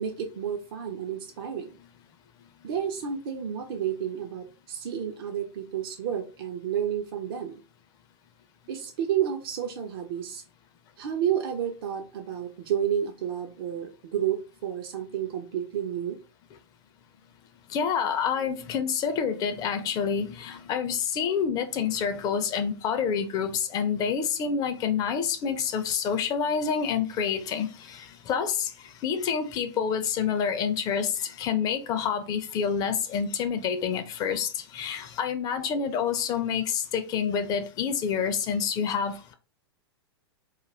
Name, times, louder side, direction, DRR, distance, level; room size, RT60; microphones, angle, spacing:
voice 1, 0.0-1.8 2.6-7.6 8.7-10.4 11.0-16.2 35.7-35.8, right 9 dB, 55° right, 0.5 m, -31 dB
voice 2, 17.7-28.7 29.0-39.3, left 7 dB, 30° left, 0.4 m, -28 dB
2.3 x 2.3 x 3.1 m
hypercardioid pair, 105°, 14 cm